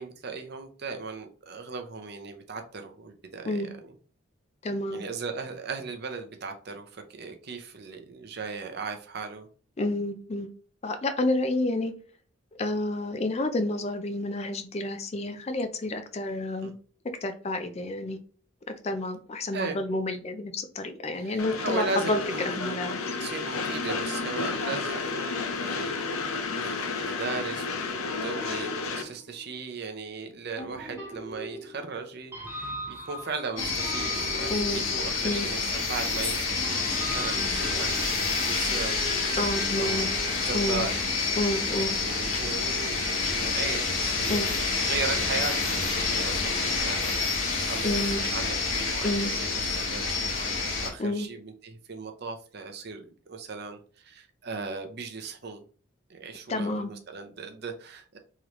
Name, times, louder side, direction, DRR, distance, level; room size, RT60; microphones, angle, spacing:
voice 1, 0.0-3.9 4.9-9.5 16.6-16.7 19.5-19.8 21.1-22.9 23.2-39.0 39.7-55.7 56.1-58.2, right 4 dB, 50° right, 0.6 m, -37 dB
voice 2, 4.6-5.0 9.8-10.5 10.8-11.9 12.6-16.7 17.2-18.2 18.7-22.2 22.5-23.0 34.5-34.8 35.2-35.5 39.4-40.1 40.5-40.9 41.4-41.9 44.3-44.5 47.8-48.2 49.0-49.3 51.0-51.3 56.5-56.9, left 2 dB, 30° left, 0.4 m, -29 dB
Train, 21.4-29.0, left 4 dB, 90° left, 0.7 m, -31 dB
sound 1, 28.0-29.7 30.6-36.0 36.6-40.5, equal, 10° right, 1.2 m, -40 dB
sound 2, 33.6-50.9, left 4 dB, 65° left, 1.0 m, -28 dB
3.7 x 3.1 x 3.0 m
head